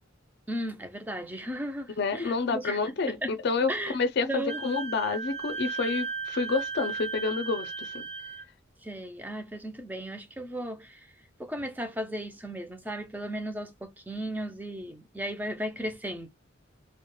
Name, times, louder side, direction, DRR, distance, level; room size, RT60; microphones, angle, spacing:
voice 1, 0.5-2.8 3.2-3.3 3.7-4.0 4.2-4.6 8.8-11.1 11.4-16.3, right 1 dB, 10° right, 0.3 m, -35 dB
voice 2, 2.0-8.0, left 4 dB, 55° left, 0.4 m, -29 dB
Wind instrument woodwind instrument, 4.5-8.4, right 5 dB, 60° right, 0.6 m, -36 dB
2.3 x 2.0 x 3.0 m
head